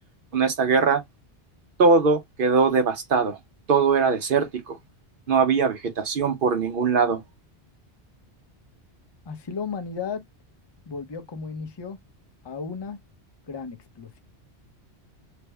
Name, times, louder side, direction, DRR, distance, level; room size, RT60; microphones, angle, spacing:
voice 1, 0.3-1.0 1.8-3.4 3.7-4.8 5.3-7.2, right 5 dB, 55° right, 0.8 m, -21 dB
voice 2, 9.2-10.2 10.9-12.0 12.4-13.0 13.5-14.2, left 5 dB, 30° left, 0.5 m, -34 dB
3.4 x 2.0 x 3.3 m
omnidirectional pair, 1.1 m